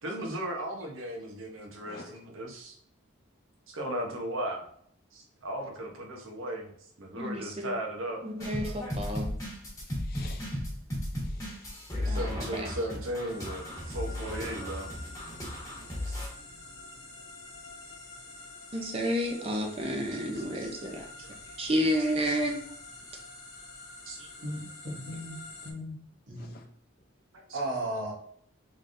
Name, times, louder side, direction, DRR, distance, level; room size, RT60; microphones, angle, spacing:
voice 1, 0.0-2.8 3.7-4.7 5.1-6.7 7.0-8.2 11.9-14.9 16.1-16.2 20.6-20.7 21.2-21.3 22.2-22.4 24.1-24.3 27.3-27.6, right 1 dB, 75° right, 2 dB, 0.9 m, -36 dB
voice 2, 1.8-2.2 5.6-5.7 9.9-10.5 11.2-11.8 26.4-26.7, left 3 dB, 45° left, 4 dB, 0.5 m, -50 dB
voice 3, 7.2-7.7 8.2-9.3 12.1-12.7 18.7-21.0 21.6-22.6, equal, 30° right, 2 dB, 0.6 m, -30 dB
sound 1, 8.4-16.3, left 1 dB, 15° left, 1.2 m, -35 dB
sound 2, 13.3-25.7, left 2 dB, 90° left, 1.0 m, -47 dB
voice 4, 24.4-25.4 25.6-26.0 26.3-26.6 27.5-28.1, right 1 dB, 60° right, -2 dB, 1.2 m, -35 dB
3.8 x 3.3 x 2.6 m, 0.63 s
head